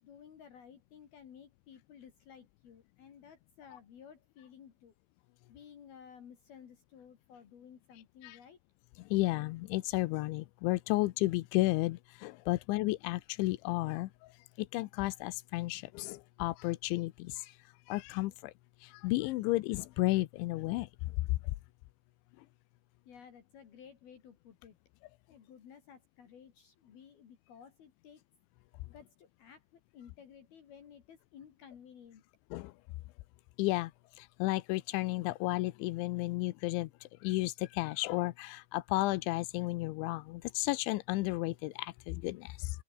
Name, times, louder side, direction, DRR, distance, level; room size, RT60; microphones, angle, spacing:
voice 1, 0.0-4.9 5.5-8.6 23.1-24.8 25.3-28.2 28.9-32.2, left 8 dB, 60° left, 4.3 m, -55 dB
voice 2, 9.1-14.1 14.7-17.3 17.9-18.3 19.0-20.9 32.5-32.7 33.6-33.9 34.4-36.9 37.2-42.7, left 19 dB, 90° left, 3.1 m, -32 dB
open air
omnidirectional pair, 5.4 m